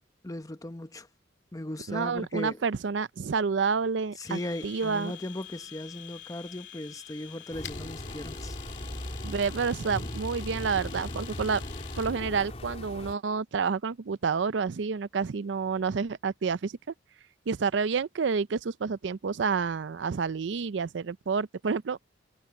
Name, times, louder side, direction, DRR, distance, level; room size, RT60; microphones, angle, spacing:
voice 1, 0.2-1.1 1.5-2.6 4.2-8.6, left 1 dB, 20° left, 0.9 m, -37 dB
voice 2, 1.9-5.1 9.2-11.6 11.9-16.8 17.5-22.0, right 5 dB, 75° right, 0.5 m, -29 dB
Domestic sounds home sounds, 4.2-12.2, left 10 dB, 75° left, 2.8 m, -47 dB
sound 1, 7.5-13.1, left 1 dB, 35° left, 3.2 m, -38 dB
head